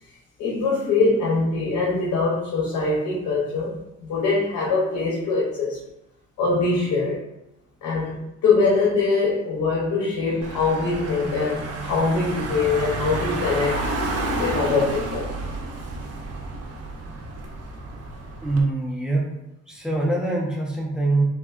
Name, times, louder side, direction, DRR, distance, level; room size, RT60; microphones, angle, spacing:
voice 1, 0.4-5.8 6.4-7.3 7.8-13.9 14.3-15.3, left 3 dB, 85° left, -5 dB, 0.8 m, -23 dB
Car / Engine, 10.4-18.6, right 2 dB, 55° right, 0.6 m, -30 dB
voice 2, 18.4-19.3 19.7-21.2, right 2 dB, 5° right, -3 dB, 0.7 m, -23 dB
3.4 x 2.4 x 2.4 m, 0.86 s
cardioid pair, 90°, 30 cm